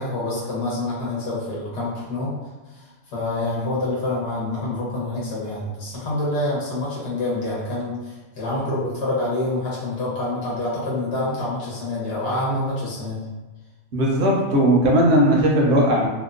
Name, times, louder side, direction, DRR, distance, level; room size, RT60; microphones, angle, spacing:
voice 1, 0.0-2.3 2.7-13.2, left 2 dB, 70° left, -7 dB, 1.1 m, -27 dB
voice 2, 13.9-16.1, right 1 dB, 70° right, -1 dB, 0.8 m, -17 dB
2.8 x 2.0 x 2.4 m, 1.2 s
omnidirectional pair, 1.2 m